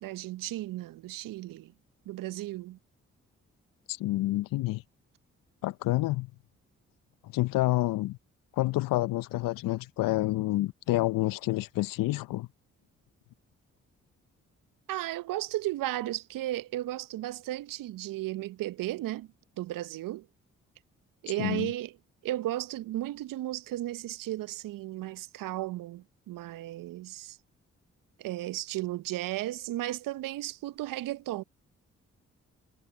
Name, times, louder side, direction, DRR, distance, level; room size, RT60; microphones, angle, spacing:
voice 1, 0.0-1.7 2.1-2.8 14.9-19.3 19.6-20.3 21.2-21.9 22.2-27.4 28.2-31.4, right 15 dB, 70° right, 0.8 m, -34 dB
voice 2, 3.9-4.8 5.6-6.3 7.2-8.2 8.5-12.5 21.4-21.7, left 18 dB, 70° left, 0.7 m, -28 dB
hypercardioid pair, 40°, 35 cm